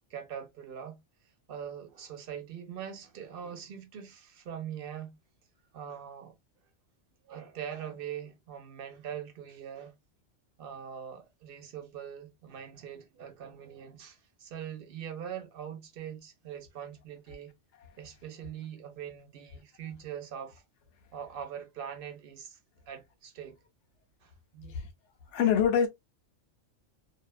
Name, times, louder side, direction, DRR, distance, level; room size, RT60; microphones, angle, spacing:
voice 1, 0.1-1.0 1.5-5.2 5.7-6.3 7.2-9.9 10.6-17.5 18.0-20.6 21.1-22.6 22.9-23.6 24.2-24.9, right 9 dB, 55° right, 0.8 m, -42 dB
voice 2, 25.3-25.9, left 8 dB, 75° left, 0.9 m, -24 dB
2.6 x 2.2 x 2.2 m
omnidirectional pair, 1.2 m